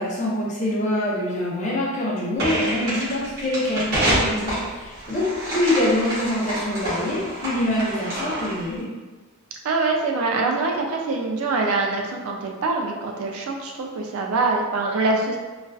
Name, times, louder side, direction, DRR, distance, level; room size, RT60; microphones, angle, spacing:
voice 1, 0.0-8.9, left 1 dB, 30° left, -6 dB, 0.5 m, -25 dB
sound 1, 2.4-8.7, right 1 dB, 45° right, 0.9 m, -27 dB
voice 2, 9.6-15.4, right 3 dB, 75° right, 1 dB, 0.4 m, -24 dB
2.4 x 2.3 x 2.2 m, 1.3 s
head